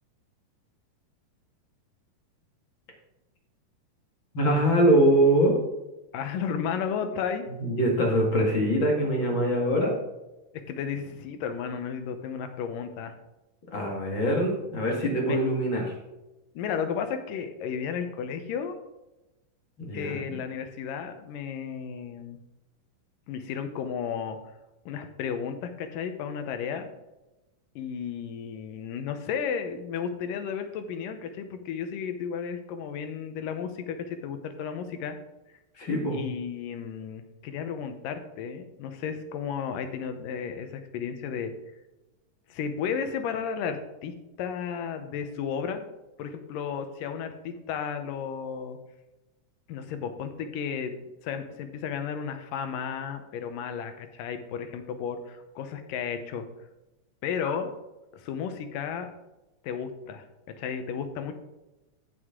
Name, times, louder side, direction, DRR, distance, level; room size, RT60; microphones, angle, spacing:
voice 1, 4.3-5.6 7.6-9.9 13.7-15.8 19.8-20.4 35.8-36.2, right 1 dB, 40° left, -1 dB, 2.2 m, -23 dB
voice 2, 6.1-7.4 10.7-13.1 15.2-15.4 16.6-18.8 19.9-22.4 23.3-24.4 24.9-26.9 27.8-35.2 36.1-41.5 42.5-45.8 46.2-48.8 49.7-50.9 51.2-56.5 57.2-57.7 58.1-59.1 59.6-60.2 60.6-61.3, left 7 dB, 85° left, 8 dB, 2.6 m, -33 dB
14.5 x 6.4 x 3.7 m, 1.0 s
omnidirectional pair, 3.8 m